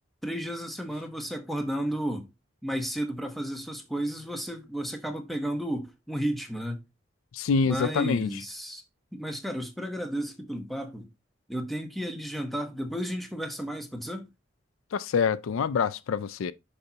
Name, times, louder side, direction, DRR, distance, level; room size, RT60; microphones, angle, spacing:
voice 1, 0.2-2.3 2.6-6.8 7.6-8.8 9.1-11.1 11.5-14.3, equal, ahead, 0.9 m, -33 dB
voice 2, 7.3-8.3 14.9-16.5, left 5 dB, 85° left, 0.4 m, -26 dB
6.6 x 5.5 x 2.8 m
head